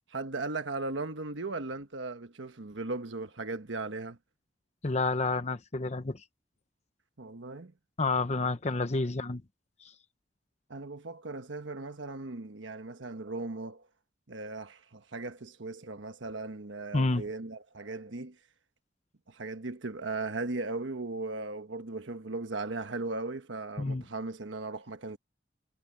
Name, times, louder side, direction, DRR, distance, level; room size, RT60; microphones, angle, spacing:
voice 1, 0.1-4.2 7.2-7.7 10.7-13.9 14.3-18.4 19.3-25.2, right 3 dB, 90° right, 1.3 m, -37 dB
voice 2, 4.8-6.2 8.0-9.4 9.8-9.9 16.9-17.2 23.8-24.0, left 3 dB, 35° left, 0.9 m, -29 dB
head